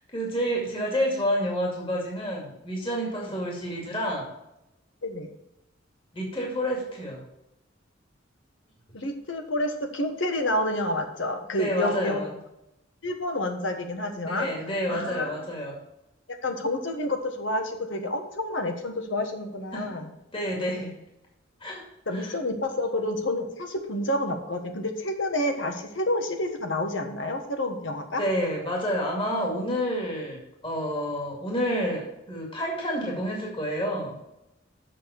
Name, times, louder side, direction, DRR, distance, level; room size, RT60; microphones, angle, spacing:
voice 1, 0.1-4.3 6.1-7.2 11.6-12.3 14.2-15.8 19.7-20.0 20.3-21.0 21.6-21.8 22.1-22.3 28.1-34.2, equal, 30° left, -2 dB, 2.3 m, -29 dB
voice 2, 8.9-12.2 13.0-14.5 14.9-15.3 16.4-20.1 22.1-28.2, left 1 dB, 75° left, 5 dB, 1.4 m, -29 dB
7.6 x 6.3 x 7.1 m, 0.87 s
head